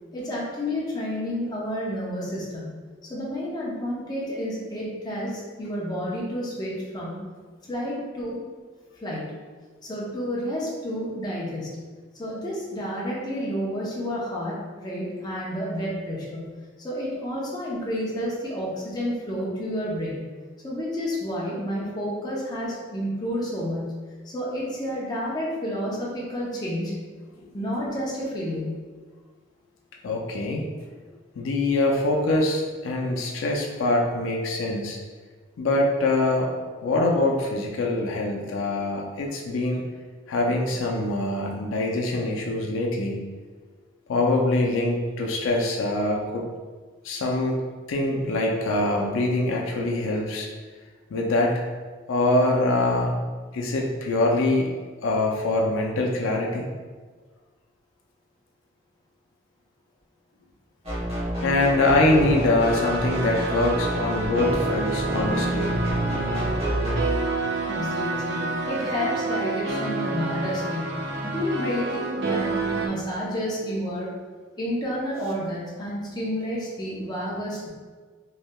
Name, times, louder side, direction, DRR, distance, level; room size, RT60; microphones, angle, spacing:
voice 1, 0.1-2.8 3.1-7.2 7.7-8.4 9.0-9.3 9.8-11.8 12.2-16.5 16.8-20.2 20.6-24.0 24.2-27.0 27.5-28.8 67.6-74.1 74.6-77.7, equal, 20° left, -6 dB, 0.6 m, -30 dB
voice 2, 30.0-30.7 31.4-35.0 35.6-36.5 36.8-39.9 40.3-43.2 44.1-46.5 47.0-47.6 47.9-50.5 51.1-51.7 52.1-53.1 53.5-54.7 55.0-56.7 61.4-65.7, left 2 dB, 85° left, 0 dB, 0.4 m, -24 dB
sound 1, 60.8-67.0, equal, 30° right, 0.9 m, -29 dB
Keys of life, 62.6-72.9, right 3 dB, 60° right, 0.4 m, -29 dB
3.1 x 2.7 x 2.2 m, 1.4 s
head